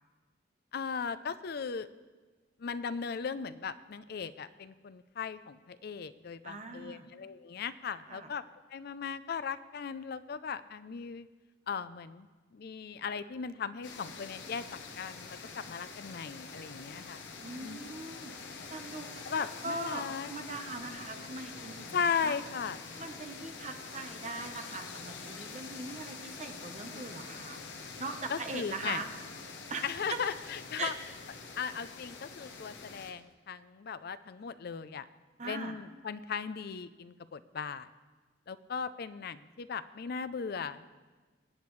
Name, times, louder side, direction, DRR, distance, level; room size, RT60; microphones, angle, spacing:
voice 1, 0.7-1.9 2.6-8.4 8.7-11.3 11.7-17.2 17.6-17.8 19.2-20.3 21.9-22.8 28.3-29.0 29.8-30.9 31.6-35.0 35.4-37.9 38.5-40.8, left 6 dB, 55° left, 14 dB, 0.5 m, -37 dB
voice 2, 6.4-7.1 8.1-8.3 17.4-22.3 23.0-27.6 28.0-29.1 29.7-29.8 30.1-30.2 30.8-30.9 35.4-35.7, right 3 dB, 40° right, 6 dB, 1.0 m, -41 dB
sound 1, 13.8-33.1, left 4 dB, 70° left, 1.0 m, -46 dB
24.5 x 8.5 x 3.2 m, 1.3 s
head